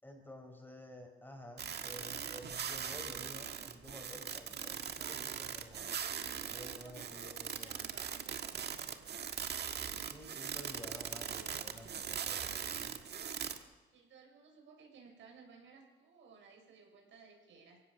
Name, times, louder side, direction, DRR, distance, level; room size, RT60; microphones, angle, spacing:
voice 1, 0.0-6.0 6.5-7.9 10.1-12.9, left 1 dB, 10° left, 4 dB, 5.0 m, -52 dB
sound 1, 1.6-13.6, right 8 dB, 55° right, 1.7 m, -41 dB
voice 2, 6.8-9.6 13.9-17.8, right 5 dB, 75° right, 2 dB, 6.2 m, -59 dB
23.0 x 17.0 x 7.3 m, 1.2 s
cardioid pair, 90°, 20 cm